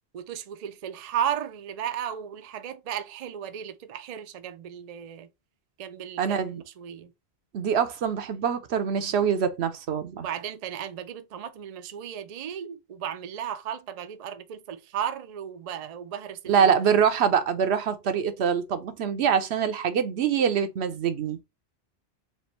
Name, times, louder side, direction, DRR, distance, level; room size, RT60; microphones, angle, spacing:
voice 1, 0.1-5.3 5.8-7.1 10.1-16.7, right 9 dB, 50° right, 0.4 m, -35 dB
voice 2, 6.2-6.6 7.5-10.3 16.5-21.4, right 7 dB, 80° right, 0.9 m, -24 dB
3.4 x 2.6 x 4.2 m
omnidirectional pair, 1.1 m